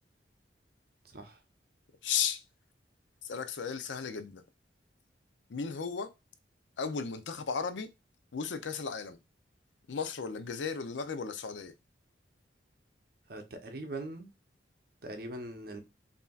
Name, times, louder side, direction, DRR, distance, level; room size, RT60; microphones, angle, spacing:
voice 1, 2.0-2.4 3.2-4.4 5.5-6.1 6.8-7.9 8.3-9.2 9.9-11.7, left 6 dB, 85° left, 0.5 m, -35 dB
voice 2, 13.3-14.3 15.0-15.8, right 2 dB, 55° right, 0.8 m, -41 dB
5.5 x 2.7 x 2.3 m
head